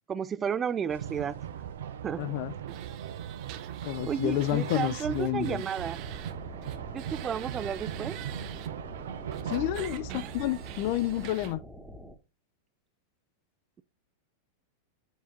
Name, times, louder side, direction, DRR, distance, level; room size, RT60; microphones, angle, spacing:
voice 1, 0.1-1.4 2.0-2.3 4.0-6.0 6.9-8.2, right 7 dB, 25° right, 0.4 m, -32 dB
sound 1, 0.9-11.3, right 9 dB, 80° right, 0.5 m, -39 dB
voice 2, 2.2-2.5 3.8-5.6 9.5-11.6, left 15 dB, 55° left, 0.5 m, -30 dB
sound 2, 2.7-6.3 6.6-8.7 9.3-11.5, right 14 dB, 50° right, 0.9 m, -45 dB
sound 3, 5.8-12.2, equal, 5° right, 1.1 m, -47 dB
7.2 x 2.8 x 4.8 m
hypercardioid pair, 110°, 0 cm